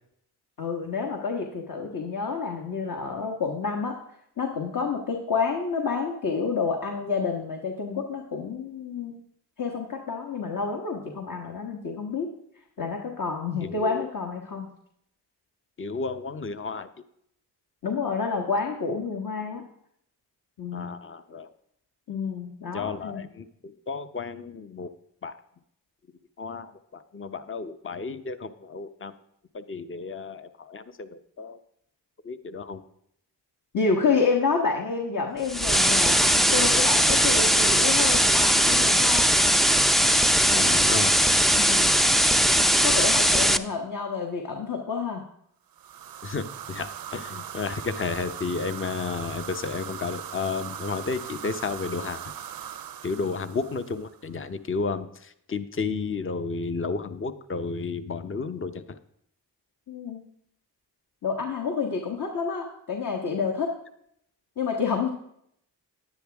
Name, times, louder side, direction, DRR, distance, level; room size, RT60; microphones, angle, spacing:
voice 1, 0.6-4.0 4.4-9.1 9.6-12.3 12.8-14.7 17.8-19.6 20.6-20.9 22.1-23.2 33.7-39.4 41.5-41.9 42.8-45.2 59.9-60.2 61.2-63.7 64.6-65.1, left 5 dB, 55° left, 1 dB, 1.5 m, -29 dB
voice 2, 13.6-14.0 15.8-16.9 20.7-21.5 22.7-23.5 23.9-24.9 25.2-25.4 26.4-29.1 29.5-31.6 32.2-32.8 40.5-41.2 42.9-43.0 46.2-52.3 53.0-59.0, left 4 dB, 30° left, 11 dB, 0.8 m, -32 dB
sound 1, 35.5-43.6, equal, ahead, 0.4 m, -20 dB
sound 2, 45.7-54.3, right 9 dB, 60° right, 0.6 m, -39 dB
10.5 x 9.9 x 3.5 m, 0.72 s
cardioid pair, 55°, 41 cm